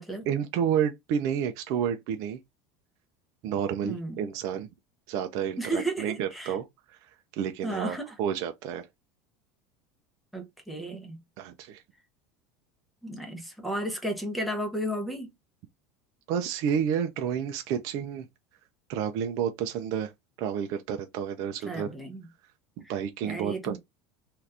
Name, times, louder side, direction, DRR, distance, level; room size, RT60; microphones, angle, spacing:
voice 1, 0.3-2.4 3.4-4.7 5.1-8.9 11.4-11.8 16.3-18.3 18.9-20.1 20.4-21.9 22.8-23.8, right 8 dB, 50° right, 0.4 m, -30 dB
voice 2, 3.8-4.3 5.6-6.5 7.6-8.1 10.3-11.2 13.0-15.3 21.6-22.2 23.2-23.8, right 1 dB, ahead, 0.8 m, -33 dB
2.8 x 2.5 x 3.3 m
cardioid pair, 160°, 7 cm